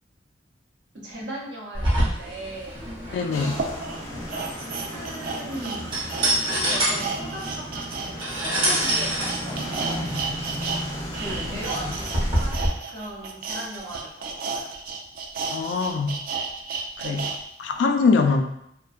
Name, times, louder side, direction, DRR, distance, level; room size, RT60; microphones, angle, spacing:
voice 1, 0.9-2.8 3.4-3.5 4.1-4.6 4.9-6.0 6.7-8.1 8.4-10.1 11.1-14.7 17.0-17.2, right 1 dB, 75° right, -4 dB, 0.7 m, -38 dB
sound 1, 1.7-12.7, right 1 dB, 30° right, 0.7 m, -27 dB
sound 2, 2.7-2.8 3.4-10.8 11.1-17.4 17.8-17.9, right 4 dB, 50° right, 0.3 m, -33 dB
voice 2, 3.1-3.6 11.3-11.5 15.5-16.2 17.0-17.2 17.6-18.4, left 4 dB, 90° left, 5 dB, 0.3 m, -23 dB
sound 3, 3.3-12.5, equal, 20° left, 0.4 m, -35 dB
2.5 x 2.1 x 2.3 m, 0.75 s
head